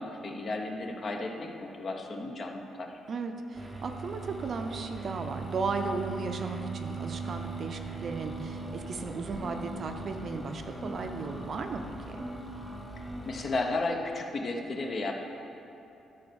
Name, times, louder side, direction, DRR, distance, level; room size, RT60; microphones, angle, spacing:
voice 1, 0.0-3.0 13.3-15.1, left 2 dB, 40° left, 2 dB, 0.9 m, -33 dB
voice 2, 3.1-12.2, right 4 dB, 40° right, 5 dB, 0.6 m, -35 dB
sound 1, 3.5-13.6, right 3 dB, 5° right, 0.8 m, -40 dB
12.0 x 4.4 x 7.0 m, 2.9 s
cardioid pair, 145°, 0 cm